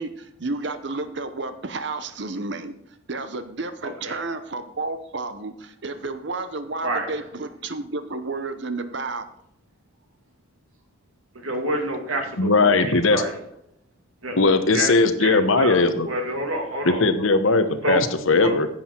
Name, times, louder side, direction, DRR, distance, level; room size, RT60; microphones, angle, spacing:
voice 1, 0.0-2.7 3.1-9.3, right 3 dB, 60° right, 9 dB, 0.9 m, -31 dB
voice 2, 11.4-13.3 14.2-14.9 15.2-17.1 17.8-18.0 18.3-18.5, right 1 dB, 90° right, 3 dB, 2.5 m, -28 dB
voice 3, 12.4-13.2 14.4-16.1 16.8-18.7, left 3 dB, 80° left, 10 dB, 1.1 m, -19 dB
10.0 x 8.1 x 4.5 m, 0.75 s
head